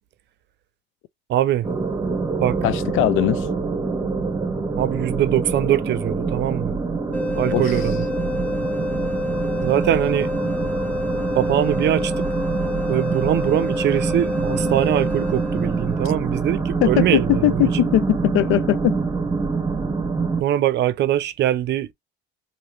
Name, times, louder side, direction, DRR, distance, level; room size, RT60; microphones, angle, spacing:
voice 1, 1.3-1.7 2.4-2.6 4.8-6.7 7.4-8.0 9.6-10.3 11.3-12.3 12.9-17.7 20.4-21.9, right 12 dB, 55° right, 0.6 m, -22 dB
sound 1, 1.6-20.4, right 4 dB, 15° right, 0.8 m, -25 dB
voice 2, 2.6-3.4 7.5-7.6 16.8-19.0, left 14 dB, 75° left, 0.4 m, -20 dB
sound 2, 7.1-16.1, left 2 dB, 5° left, 0.5 m, -28 dB
3.0 x 2.7 x 3.1 m
cardioid pair, 105°, 21 cm